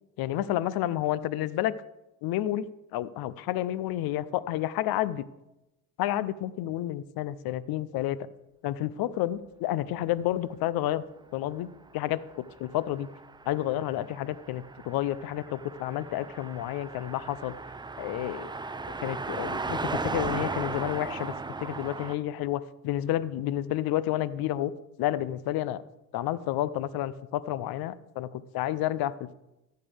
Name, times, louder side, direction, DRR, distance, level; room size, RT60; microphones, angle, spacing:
voice 1, 0.2-1.7 2.2-2.7 2.9-5.2 6.0-8.2 8.6-11.0 11.3-11.7 11.9-12.2 12.6-13.1 13.5-17.5 18.0-18.5 19.0-21.3 21.6-24.7 25.0-25.8 26.1-29.3, left 13 dB, 60° left, 18 dB, 0.6 m, -30 dB
Car passing by, 12.0-22.2, right 3 dB, 10° right, 0.5 m, -36 dB
13.5 x 6.7 x 3.4 m, 0.93 s
hypercardioid pair, 60°, 42 cm